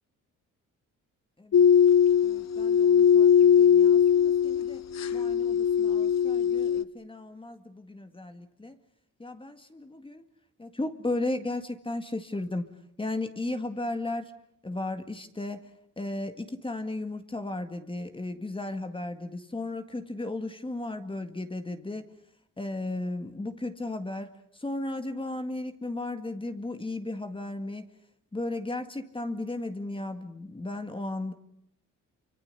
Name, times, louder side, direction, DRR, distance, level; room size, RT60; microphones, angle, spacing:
sound 1, 1.5-6.8, left 8 dB, 55° left, 0.9 m, -20 dB
voice 1, 2.2-4.8 5.1-8.8 9.2-10.2 10.6-12.7 13.0-14.3 14.6-15.7 16.0-22.1 22.6-27.9 28.3-31.3, left 2 dB, 15° left, 8 dB, 1.9 m, -35 dB
28.0 x 25.0 x 6.8 m, 0.77 s
cardioid pair, 100°, 32 cm